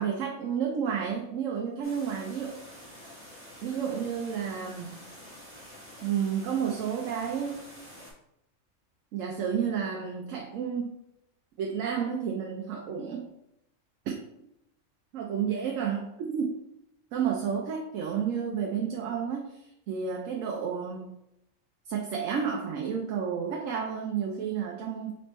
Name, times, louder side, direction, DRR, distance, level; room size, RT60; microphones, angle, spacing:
voice 1, 0.0-2.6 3.6-5.1 6.0-7.6 9.1-10.9 11.6-13.3 15.1-16.5 17.1-19.6 19.9-21.1 21.9-25.1, right 7 dB, 85° right, 1 dB, 1.0 m, -31 dB
sound 1, 1.8-8.1, equal, 10° right, 1.3 m, -48 dB
4.0 x 3.3 x 3.0 m, 0.81 s
omnidirectional pair, 1.3 m